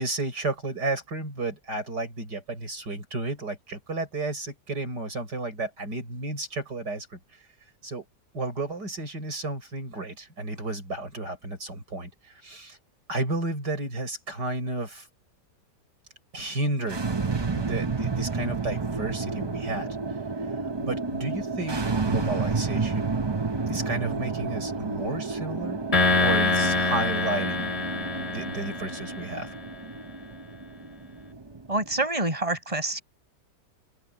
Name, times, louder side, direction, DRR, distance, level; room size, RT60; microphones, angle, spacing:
voice 1, 0.0-7.2 7.8-8.0 8.3-12.8 13.1-15.1 16.3-17.0 17.5-19.9 20.8-23.1 23.7-25.8 26.2-27.6 28.2-29.5, right 2 dB, 75° right, 7.5 m, -32 dB
sound 1, 16.8-32.0, right 4 dB, 35° right, 0.4 m, -31 dB
sound 2, 25.9-29.4, left 3 dB, 20° left, 2.7 m, -25 dB
voice 2, 31.7-33.0, right 2 dB, 20° right, 5.9 m, -27 dB
open air
omnidirectional pair, 1.8 m